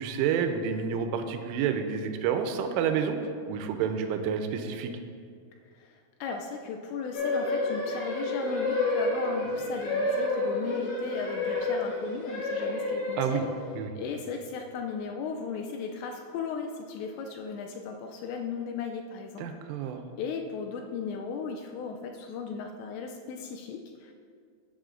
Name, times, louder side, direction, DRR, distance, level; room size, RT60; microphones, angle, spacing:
voice 1, 0.0-3.2 3.5-4.9 13.2-13.4 13.8-13.9 19.4-20.0, right 7 dB, 85° right, 7 dB, 3.1 m, -29 dB
voice 2, 5.7-13.5 13.9-19.5 20.2-24.1, left 5 dB, 90° left, 3 dB, 2.5 m, -36 dB
sound 1, 7.1-13.7, left 2 dB, 55° left, 3.9 m, -30 dB
14.0 x 7.7 x 2.6 m, 2.3 s
omnidirectional pair, 5.7 m